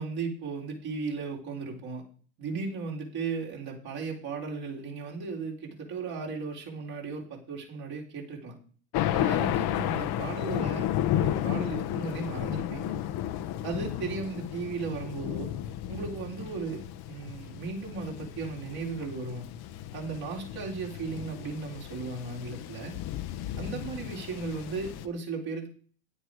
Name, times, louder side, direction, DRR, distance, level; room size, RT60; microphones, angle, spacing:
voice 1, 0.0-2.0 2.4-8.6 9.1-12.9 13.6-15.5 15.9-19.4 19.9-22.9 23.6-25.7, right 4 dB, 55° right, -1 dB, 3.8 m, -36 dB
Thunder, 8.9-25.1, left 12 dB, 55° left, 1.0 m, -33 dB
9.8 x 9.2 x 4.8 m, 0.43 s
hypercardioid pair, 80°, 46 cm